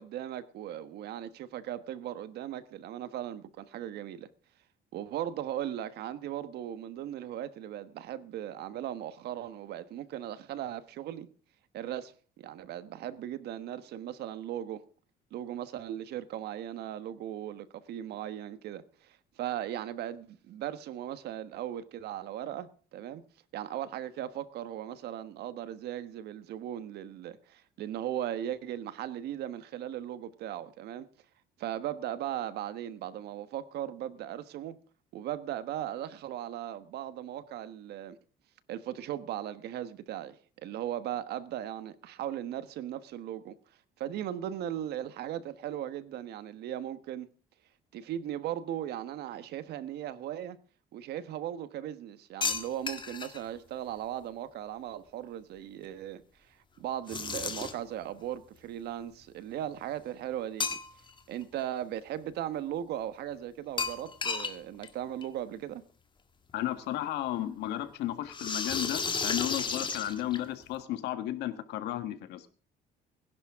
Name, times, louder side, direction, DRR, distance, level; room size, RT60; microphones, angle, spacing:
voice 1, 0.0-4.3 4.9-11.3 11.7-14.8 15.3-23.2 23.5-31.1 31.6-34.8 35.1-38.2 38.7-43.5 44.0-47.3 47.9-50.6 50.9-60.8 61.3-65.8, right 11 dB, 75° right, 1.3 m, -38 dB
sound 1, 52.4-53.4 57.1-57.9 60.6-61.2 61.6-61.7 63.8-64.6 64.8-64.9 65.2-65.3 66.5-66.6 68.3-70.6, left 4 dB, 30° left, 1.7 m, -33 dB
voice 2, 66.5-72.5, left 13 dB, 85° left, 1.6 m, -34 dB
20.5 x 11.0 x 3.6 m
cardioid pair, 110°, 17 cm